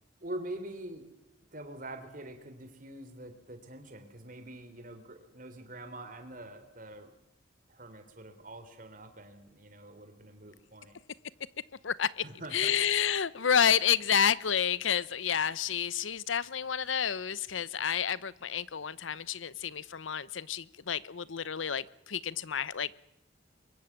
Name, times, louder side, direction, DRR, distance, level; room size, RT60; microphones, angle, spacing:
voice 1, 0.2-7.1 7.7-11.0 12.2-12.7, right 1 dB, 45° right, 7 dB, 3.5 m, -45 dB
voice 2, 11.8-12.2 12.5-22.9, left 8 dB, 85° left, 19 dB, 0.8 m, -29 dB
23.5 x 21.5 x 7.3 m, 0.86 s
head